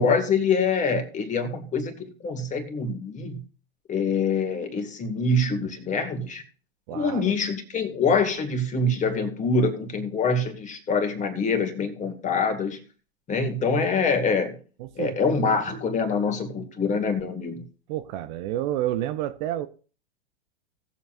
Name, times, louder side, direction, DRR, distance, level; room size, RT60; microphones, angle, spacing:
voice 1, 0.0-3.4 3.9-6.4 6.9-12.8 13.3-14.6 15.0-17.6, left 4 dB, 25° left, 2.0 m, -25 dB
voice 2, 6.9-7.4 14.8-15.1 15.4-15.6 17.9-19.7, right 13 dB, 45° right, 0.7 m, -30 dB
18.0 x 7.2 x 2.6 m
hypercardioid pair, 110°, 32 cm